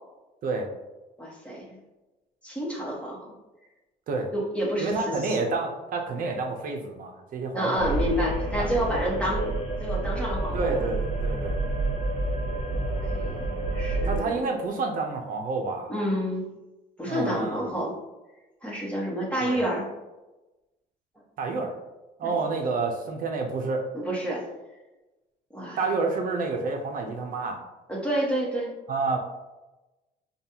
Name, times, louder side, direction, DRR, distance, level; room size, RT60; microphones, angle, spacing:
voice 1, 1.2-1.8 2.4-3.3 4.3-5.5 7.5-9.5 9.8-10.8 12.7-14.4 15.9-16.4 17.0-17.9 18.6-19.9 22.2-22.3 23.9-24.4 25.5-25.8 27.9-28.7, equal, 5° left, -4 dB, 1.2 m, -29 dB
voice 2, 4.8-7.9 8.6-8.7 10.5-11.6 14.0-15.9 17.1-17.7 19.4-19.6 21.4-21.7 22.2-23.9 25.8-27.6 28.9-29.2, right 3 dB, 55° right, 4 dB, 0.7 m, -29 dB
sound 1, 7.8-14.2, right 2 dB, 35° left, 1.2 m, -28 dB
5.2 x 2.4 x 2.8 m, 1.1 s
cardioid pair, 110°, 17 cm